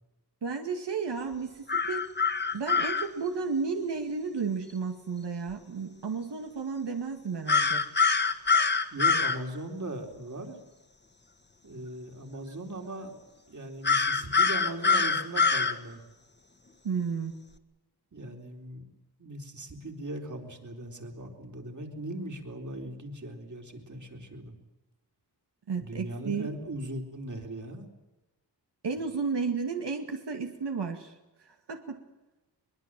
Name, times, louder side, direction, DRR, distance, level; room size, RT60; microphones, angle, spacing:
voice 1, 0.4-2.0 2.5-7.9 16.8-17.3 25.7-26.5 28.8-32.0, right 5 dB, 90° right, 4 dB, 2.2 m, -33 dB
sound 1, 1.7-3.1 7.5-9.4 13.8-15.7, left 5 dB, 25° left, 1.6 m, -24 dB
voice 2, 8.9-10.6 11.6-13.2 13.5-16.0 18.1-18.8 19.2-24.6 25.8-27.9, right 1 dB, 45° right, 3 dB, 3.9 m, -39 dB
23.0 x 22.5 x 7.6 m, 1.1 s
wide cardioid pair, 130°, 40 cm